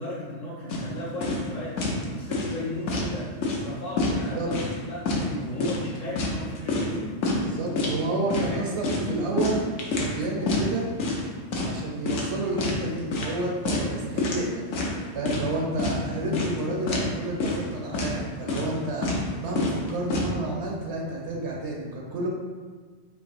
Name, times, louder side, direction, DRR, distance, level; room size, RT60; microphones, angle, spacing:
voice 1, 0.0-1.7 2.1-3.3 3.5-7.1 8.4-9.3, left 1 dB, 50° left, -7 dB, 0.6 m, -35 dB
sound 1, 0.7-0.9 1.2-1.5 1.8-2.0 2.3-3.1 3.4-3.7 4.0-4.7 5.1-5.3 5.6-6.9 7.2-7.4 7.8-8.0 8.3-8.5 8.8-10.2 10.5-10.7 11.0-11.3 11.5-11.8 12.1-12.8 13.1-13.3 13.6-13.9 14.2-14.4 14.7-15.5 15.8-16.0 16.3-16.6 16.9-17.1 17.4-17.7 17.9-18.1 18.5-18.8 19.0-19.3 19.6-20.3, left 3 dB, 85° left, 1.0 m, -27 dB
voice 2, 7.4-9.6 10.0-10.9 11.6-14.7 15.1-19.1 19.4-22.3, right 2 dB, 70° right, -2 dB, 0.9 m, -30 dB
4.7 x 2.9 x 2.5 m, 1.5 s
omnidirectional pair, 1.3 m